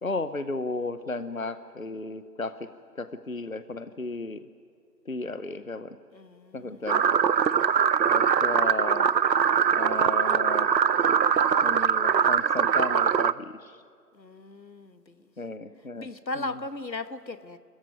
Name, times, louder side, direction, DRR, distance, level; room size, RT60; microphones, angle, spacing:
voice 1, 0.0-2.7 2.9-4.4 5.1-6.0 6.5-7.2 8.1-9.1 9.7-10.7 11.6-13.8 15.4-16.1 16.4-16.6, left 2 dB, 55° left, 13 dB, 0.8 m, -34 dB
voice 2, 6.1-6.8 8.0-8.5 14.1-15.3 16.0-17.6, left 2 dB, 90° left, 12 dB, 1.4 m, -38 dB
sound 1, 6.9-13.3, right 7 dB, 85° right, 0.7 m, -22 dB
28.5 x 14.0 x 9.4 m, 2.2 s
figure-of-eight pair, 175°, 50 cm